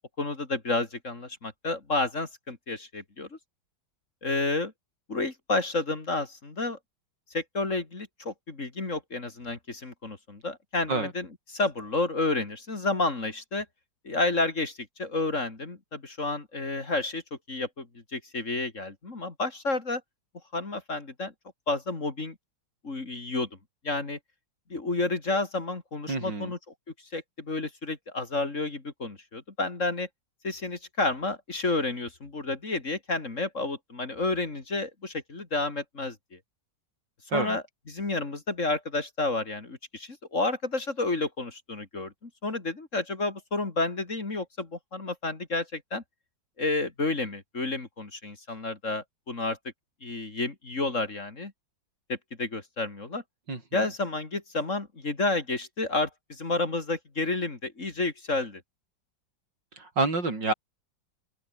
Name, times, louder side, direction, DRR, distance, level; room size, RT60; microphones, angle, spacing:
voice 1, 0.2-3.3 4.2-4.7 5.1-6.8 7.3-13.6 14.0-17.2 17.5-17.9 18.1-20.0 20.5-21.3 21.7-22.3 22.8-23.5 23.8-24.2 24.7-26.6 27.1-30.1 30.4-36.1 37.3-46.0 46.6-49.6 50.0-51.5 52.1-53.2 53.7-58.6, left 2 dB, 40° left, 3.2 m, -30 dB
voice 2, 26.1-26.5 37.3-37.6 53.5-53.8 59.8-60.5, right 3 dB, 70° right, 5.5 m, -28 dB
open air
omnidirectional pair, 2.0 m